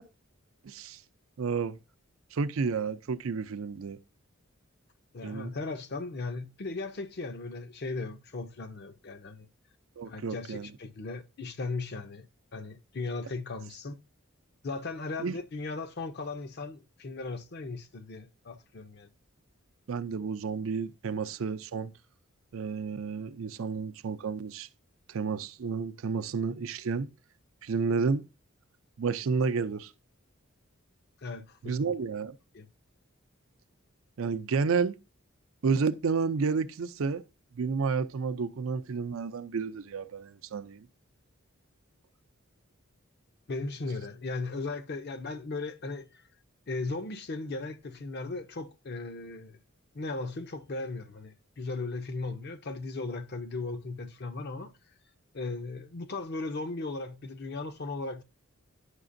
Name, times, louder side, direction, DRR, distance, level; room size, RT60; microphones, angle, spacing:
voice 1, 0.6-1.0 1.4-1.8 2.3-4.0 5.2-5.5 10.0-10.7 15.2-15.4 19.9-21.9 22.5-24.7 25.1-27.1 27.6-28.2 29.0-29.9 31.6-32.4 34.2-34.9 35.6-37.2 37.5-40.9, right 5 dB, 70° right, 0.4 m, -31 dB
voice 2, 5.1-9.5 10.1-12.2 12.5-14.0 14.6-19.1 31.2-31.9 32.5-32.7 43.5-46.2 46.7-49.6 49.9-54.7 55.3-58.2, left 3 dB, 50° left, 0.6 m, -37 dB
9.7 x 5.7 x 2.6 m
head